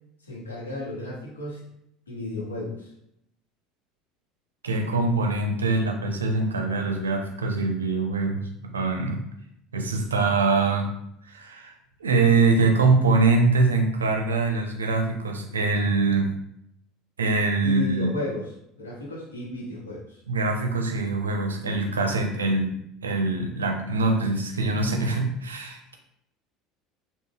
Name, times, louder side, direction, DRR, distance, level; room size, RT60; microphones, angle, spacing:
voice 1, 0.2-1.6 2.1-2.9 17.6-18.5 18.8-20.2 21.9-22.0, left 2 dB, 80° left, -3 dB, 0.8 m, -33 dB
voice 2, 4.6-9.2 9.7-10.9 11.3-11.7 12.0-16.3 17.2-18.1 20.3-22.7 23.0-25.9, right 3 dB, 80° right, 3 dB, 0.4 m, -23 dB
3.7 x 2.0 x 2.3 m, 0.76 s
figure-of-eight pair, 70°, 0 cm